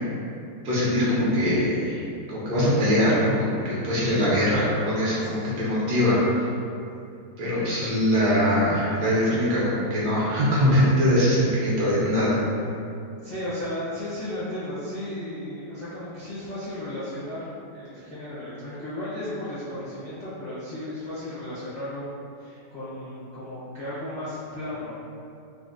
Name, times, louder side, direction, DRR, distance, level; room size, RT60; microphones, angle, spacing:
voice 1, 0.6-6.4 7.4-12.4, equal, 70° right, -8 dB, 1.4 m, -22 dB
voice 2, 4.2-5.7 13.2-22.1 22.4-25.0, left 1 dB, 40° left, -13 dB, 0.5 m, -35 dB
4.0 x 2.1 x 2.5 m, 2.6 s
omnidirectional pair, 1.8 m